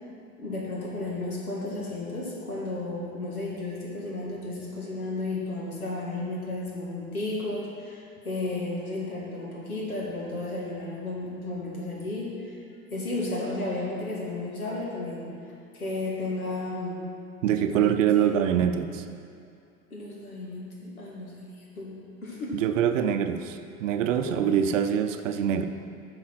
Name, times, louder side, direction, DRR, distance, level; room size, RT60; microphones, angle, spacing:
voice 1, 0.4-12.6 12.9-15.3 15.7-17.0 17.7-18.3 19.9-22.6 24.3-24.6, left 2 dB, 85° left, -3 dB, 2.0 m, -33 dB
voice 2, 17.4-19.0 22.5-25.7, right 9 dB, 60° right, 8 dB, 0.7 m, -24 dB
9.4 x 4.9 x 6.2 m, 2.5 s
figure-of-eight pair, 80°, 42 cm